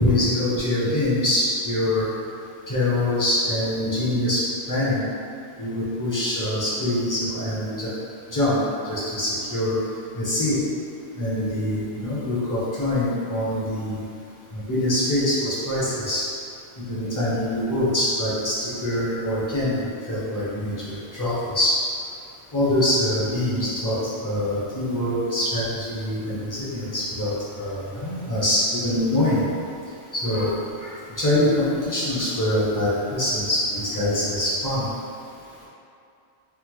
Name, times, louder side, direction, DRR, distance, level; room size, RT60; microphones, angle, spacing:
voice 1, 0.0-2.1 2.7-5.0 5.6-7.9 8.3-9.8 10.1-10.6 11.1-14.0 14.5-16.2 16.9-21.8 22.5-29.4 30.1-34.9, left 1 dB, 20° left, -9 dB, 0.6 m, -24 dB
3.5 x 2.1 x 3.0 m, 2.5 s
omnidirectional pair, 1.1 m